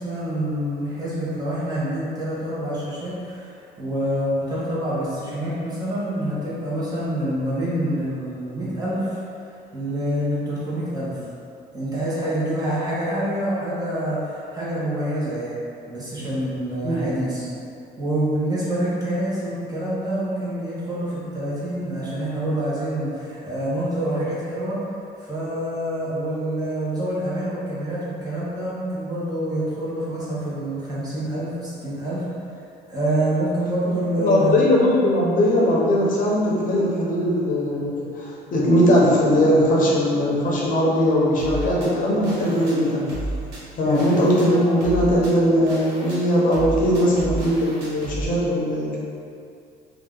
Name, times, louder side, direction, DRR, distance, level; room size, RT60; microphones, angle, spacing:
voice 1, 0.0-9.2 9.7-11.1 11.7-15.6 15.9-17.5 18.0-24.8 25.2-32.2 32.9-34.6 43.8-44.1, right 1 dB, 20° right, -9 dB, 1.0 m, -26 dB
voice 2, 34.2-43.1 43.8-49.0, equal, 50° left, -5 dB, 0.7 m, -20 dB
sound 1, 41.4-48.2, right 1 dB, 85° right, 1.0 m, -33 dB
2.8 x 2.3 x 3.6 m, 2.5 s
cardioid pair, 110°, 17 cm